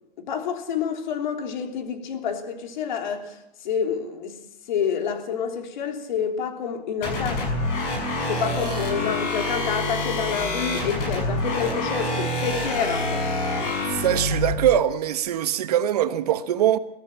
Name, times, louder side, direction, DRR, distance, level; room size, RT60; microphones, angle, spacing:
voice 1, 0.2-4.4 4.7-7.5 8.2-13.6, left 7 dB, 50° left, 3.3 m, -28 dB
sound 1, 7.0-14.5, left 1 dB, 25° left, 6.2 m, -27 dB
voice 2, 13.9-16.8, right 11 dB, 40° right, 1.2 m, -22 dB
22.5 x 14.5 x 8.8 m
hypercardioid pair, 165°, 31 cm